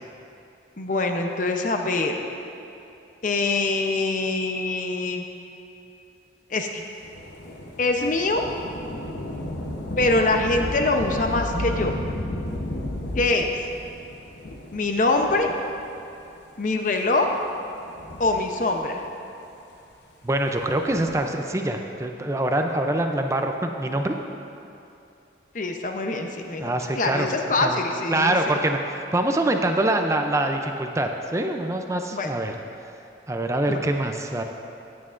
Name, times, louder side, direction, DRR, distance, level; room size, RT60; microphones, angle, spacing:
voice 1, 0.8-2.1 3.2-5.2 6.5-6.8 7.8-8.5 10.0-12.0 13.2-13.5 14.7-15.5 16.6-17.3 18.2-19.0 25.5-28.6 32.1-32.4 33.7-33.8, left 2 dB, 45° left, 4 dB, 0.7 m, -24 dB
Thunder / Rain, 7.0-16.0 16.7-16.8 17.8-19.0 20.6-21.3, left 1 dB, 70° left, 0.9 m, -33 dB
voice 2, 20.2-24.2 26.6-27.3 27.6-27.8 28.1-32.5 33.3-34.4, right 1 dB, 15° right, 4 dB, 0.4 m, -24 dB
15.5 x 9.5 x 2.5 m, 2.7 s
head